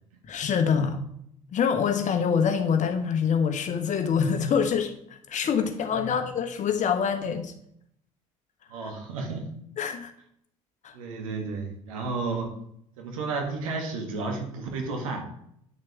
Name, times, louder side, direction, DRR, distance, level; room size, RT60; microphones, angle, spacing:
voice 1, 0.3-1.0 1.5-7.5 8.8-8.9 9.8-10.1 10.8-10.9, left 7 dB, 45° left, 7 dB, 1.2 m, -25 dB
voice 2, 8.7-9.5 10.9-12.6 13.0-15.2, right 3 dB, 80° right, 2 dB, 1.8 m, -32 dB
9.8 x 6.5 x 3.5 m, 0.71 s
hypercardioid pair, 60°, 17 cm